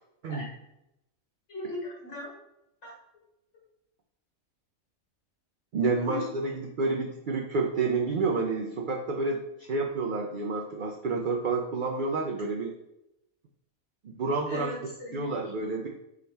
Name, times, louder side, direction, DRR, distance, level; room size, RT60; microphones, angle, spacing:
voice 1, 1.5-2.3 2.8-2.9 6.0-6.2 14.5-15.5, left 1 dB, 55° left, -4 dB, 1.8 m, -38 dB
voice 2, 5.7-9.4 9.7-12.7 14.0-14.7 15.1-15.9, right 3 dB, 70° right, 1 dB, 0.4 m, -29 dB
4.1 x 3.7 x 3.3 m, 0.86 s
omnidirectional pair, 1.4 m